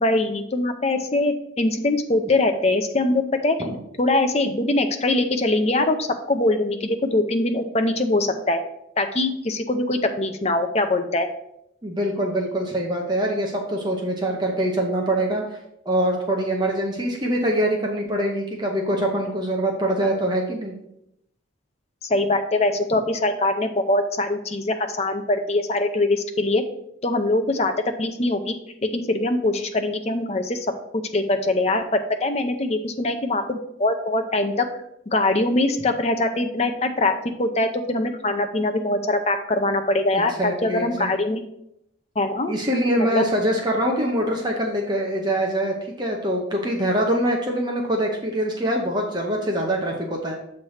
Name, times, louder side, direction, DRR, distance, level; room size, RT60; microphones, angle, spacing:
voice 1, 0.0-3.6 4.0-8.6 9.0-11.3 22.0-26.6 27.0-28.5 28.8-30.7 31.1-34.7 35.1-41.4 42.2-42.6 43.1-43.3, left 2 dB, 30° left, 7 dB, 0.5 m, -22 dB
voice 2, 11.8-15.4 15.9-20.8 40.1-41.1 42.5-50.3, right 1 dB, 20° right, 0 dB, 0.7 m, -24 dB
7.3 x 3.3 x 5.6 m, 0.79 s
head